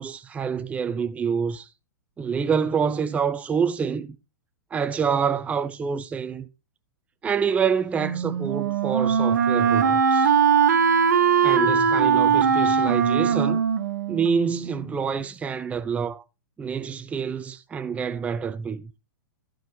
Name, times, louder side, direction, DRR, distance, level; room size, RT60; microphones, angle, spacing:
voice 1, 0.0-1.7 2.2-4.2 4.7-6.5 7.2-10.3 11.4-13.6 14.1-16.2 16.6-18.8, right 6 dB, 15° right, 0.6 m, -27 dB
Wind instrument woodwind instrument, 8.0-14.9, right 7 dB, 65° right, 1.2 m, -21 dB
14.5 x 5.2 x 3.8 m
figure-of-eight pair, 105°, 10 cm